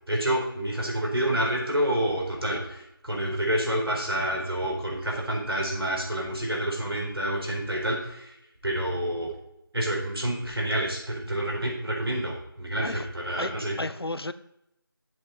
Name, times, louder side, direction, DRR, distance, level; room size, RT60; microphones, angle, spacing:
voice 1, 0.1-8.3 8.6-9.3 9.7-13.8, right 1 dB, 80° right, -1 dB, 4.3 m, -28 dB
voice 2, 13.4-14.3, left 2 dB, 85° left, 13 dB, 0.8 m, -33 dB
7.8 x 7.2 x 5.6 m, 0.82 s
figure-of-eight pair, 175°, 12 cm